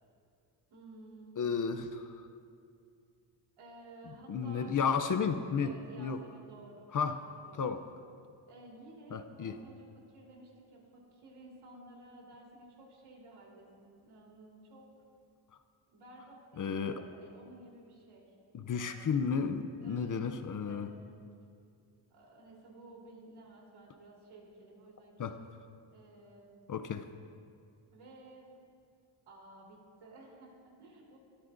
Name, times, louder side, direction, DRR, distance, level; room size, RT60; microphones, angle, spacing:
voice 1, 0.7-1.4 3.6-4.8 5.6-8.0 8.5-14.9 15.9-18.3 18.7-19.1 19.8-21.3 22.1-25.3 25.9-26.6 27.9-28.5 29.3-31.2, right 2 dB, 75° right, -3 dB, 3.7 m, -54 dB
voice 2, 1.4-2.2 4.3-5.7 6.0-6.2 6.9-7.2 7.6-7.8 9.1-9.6 16.6-17.0 18.5-20.9 25.2-25.4 26.7-27.1, left 6 dB, 40° left, 9 dB, 0.6 m, -32 dB
22.5 x 13.0 x 2.6 m, 2.4 s
wide cardioid pair, 160°, 49 cm